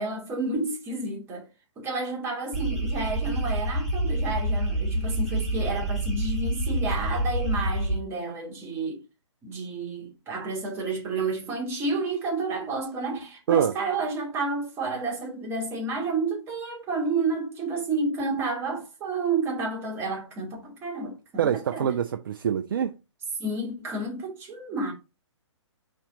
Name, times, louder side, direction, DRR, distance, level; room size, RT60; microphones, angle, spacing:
voice 1, 0.0-1.5 1.8-9.0 9.4-21.9 23.4-24.9, right 3 dB, 15° right, 1.2 m, -30 dB
sound 1, 2.5-8.0, right 1 dB, ahead, 1.5 m, -27 dB
voice 2, 21.4-23.0, right 9 dB, 45° right, 0.4 m, -25 dB
4.2 x 3.3 x 3.9 m
figure-of-eight pair, 125°, 16 cm